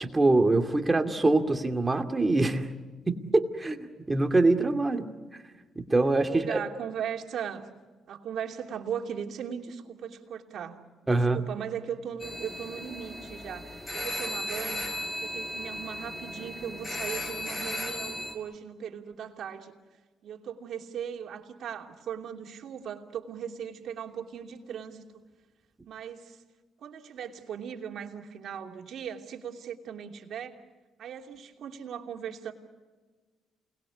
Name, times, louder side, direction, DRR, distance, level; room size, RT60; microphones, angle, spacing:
voice 1, 0.0-2.7 3.1-3.8 4.1-5.1 5.8-6.6 11.1-11.4, right 2 dB, 20° right, 6 dB, 2.4 m, -24 dB
voice 2, 6.3-7.7 8.1-14.9 15.2-19.7 20.2-25.1 25.9-26.4 26.8-30.6 31.0-32.5, right 8 dB, 65° right, 3 dB, 3.0 m, -38 dB
sound 1, 12.2-18.3, left 1 dB, 20° left, 5.1 m, -36 dB
28.5 x 20.0 x 8.5 m, 1.3 s
cardioid pair, 90°, 0 cm